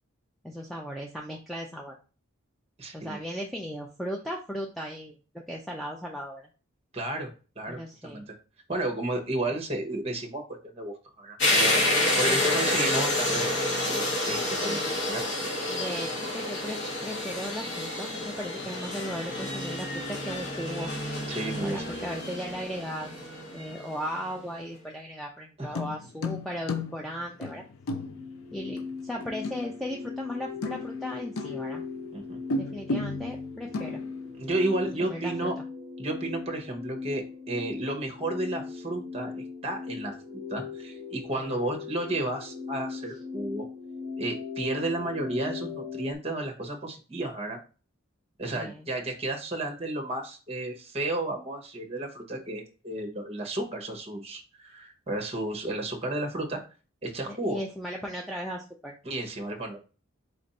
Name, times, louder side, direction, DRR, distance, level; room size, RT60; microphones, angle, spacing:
voice 1, 0.4-2.0 2.9-5.1 5.5-6.4 7.7-8.2 12.3-12.4 14.7-15.0 15.7-16.1 16.3-20.9 21.6-23.1 23.5-27.6 28.5-31.8 32.5-34.0 34.8-35.5 41.4-41.6 48.6-48.9 57.3-58.9, equal, ahead, -1 dB, 0.3 m, -37 dB
voice 2, 2.8-3.2 6.9-7.3 7.6-8.3 8.7-10.4 10.8-13.5 13.9-14.8 15.1-15.4 21.3-21.9 25.6-25.7 32.1-32.4 34.4-35.5 36.0-43.7 44.2-47.6 48.4-56.6 57.0-57.6 59.0-59.8, right 2 dB, 30° right, 3 dB, 0.9 m, -32 dB
sound 1, 11.4-24.1, left 1 dB, 55° left, 1.0 m, -29 dB
sound 2, 25.6-30.3 30.6-31.9 32.5-34.6 34.9-35.0, left 2 dB, 80° left, 0.5 m, -35 dB
sound 3, 27.9-46.1, left 5 dB, 25° left, 1.0 m, -38 dB
4.3 x 2.6 x 4.0 m, 0.35 s
head